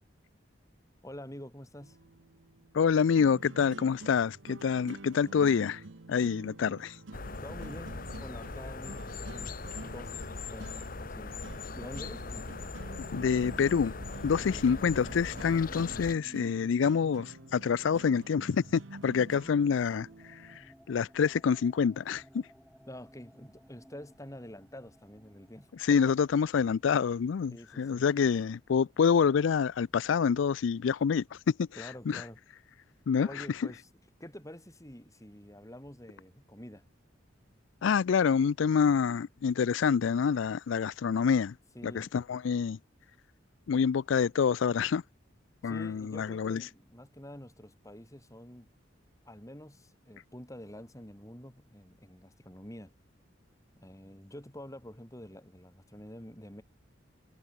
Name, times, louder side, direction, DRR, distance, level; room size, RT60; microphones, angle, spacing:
voice 1, 1.0-2.0 7.4-9.5 9.8-11.4 11.7-12.7 14.2-14.7 22.9-26.2 27.5-28.1 31.7-32.4 33.2-33.9 34.2-36.8 41.7-42.1 45.6-48.7 49.2-52.9 53.8-56.6, left 1 dB, 15° left, 5.0 m, -47 dB
sound 1, 1.8-20.6, right 2 dB, 85° right, 1.2 m, -48 dB
voice 2, 2.7-5.8 6.1-7.0 13.0-13.9 14.2-22.4 25.8-32.2 33.1-33.5 37.8-41.5 41.8-42.8 43.7-45.0 45.6-46.6, left 6 dB, 85° left, 0.4 m, -27 dB
sound 2, 7.1-16.1, left 3 dB, 50° left, 1.1 m, -40 dB
sound 3, 12.0-27.6, equal, ahead, 2.4 m, -57 dB
head